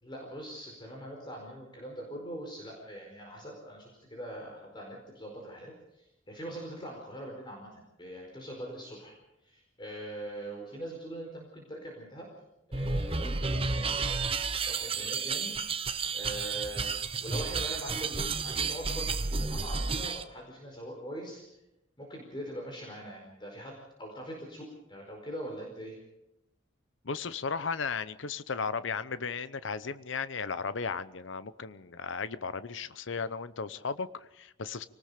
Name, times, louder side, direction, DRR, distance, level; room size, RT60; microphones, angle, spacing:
voice 1, 0.0-9.1 9.4-12.3 12.7-14.3 14.7-15.5 16.1-16.9 17.2-21.4 22.0-26.0, right 1 dB, 25° left, 0 dB, 4.8 m, -42 dB
sound 1, 12.7-20.2, right 4 dB, 30° right, 0.9 m, -32 dB
voice 2, 27.0-34.8, left 5 dB, 75° left, 14 dB, 0.8 m, -35 dB
26.0 x 19.5 x 5.1 m, 0.87 s
head